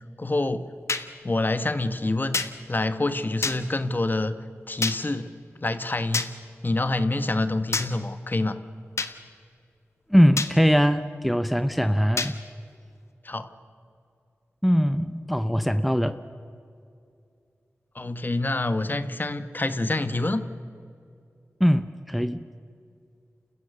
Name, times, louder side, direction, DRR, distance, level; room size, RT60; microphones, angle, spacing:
voice 1, 0.2-0.6 1.2-2.4 2.7-4.4 4.7-5.3 5.6-6.3 6.6-8.6 13.2-13.5 17.9-20.4, left 2 dB, 40° left, 10 dB, 1.3 m, -26 dB
sound 1, 0.9-1.0 2.3-2.5 3.4-3.6 4.8-5.0 6.1-6.3 7.7-7.9 9.0-9.1 10.4-10.5 12.2-12.3, left 4 dB, 65° left, 1.3 m, -26 dB
voice 2, 10.1-12.3 14.6-16.2 21.6-22.4, equal, ahead, 10 dB, 0.8 m, -21 dB
29.5 x 15.5 x 6.9 m, 2.5 s
cardioid pair, 50°, 5 cm